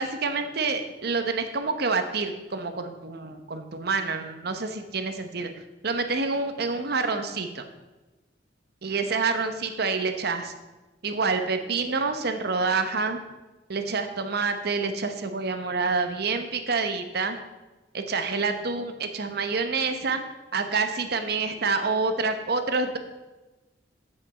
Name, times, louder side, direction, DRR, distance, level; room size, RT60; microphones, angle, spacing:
voice 1, 0.0-5.5 5.8-7.6 8.8-10.5 11.0-13.2 13.7-17.4 17.9-20.2 20.5-23.0, right 4 dB, 60° right, 7 dB, 0.9 m, -27 dB
7.9 x 7.0 x 5.5 m, 1.1 s
head